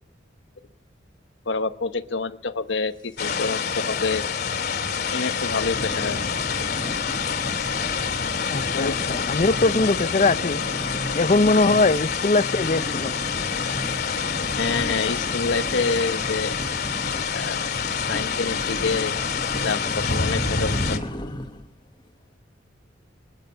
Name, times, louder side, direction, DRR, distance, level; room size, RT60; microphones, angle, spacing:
voice 1, 1.5-4.2 5.1-6.2 8.7-9.0 14.6-16.6 17.3-17.6 18.1-19.1 19.5-21.0, left 4 dB, 85° left, 1.0 m, -27 dB
sound 1, 3.2-21.0, left 6 dB, 60° left, 2.2 m, -27 dB
sound 2, 4.1-4.4 4.8-4.9 5.5-21.7, equal, 25° left, 1.4 m, -35 dB
voice 2, 8.5-10.6 11.1-13.1, left 3 dB, 40° left, 0.6 m, -21 dB
26.0 x 9.1 x 5.7 m
head